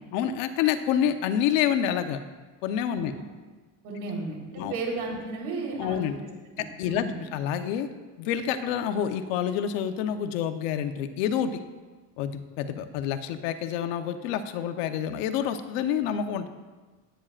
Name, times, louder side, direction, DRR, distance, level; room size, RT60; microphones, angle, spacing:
voice 1, 0.1-2.2 2.6-3.1 4.6-4.7 5.8-6.2 6.6-7.9 8.2-11.6 12.2-16.5, left 9 dB, 90° left, 8 dB, 1.0 m, -28 dB
voice 2, 3.8-6.1 6.6-7.2, right 3 dB, 65° right, -2 dB, 4.0 m, -34 dB
19.0 x 9.0 x 2.5 m, 1.3 s
cardioid pair, 135°, 38 cm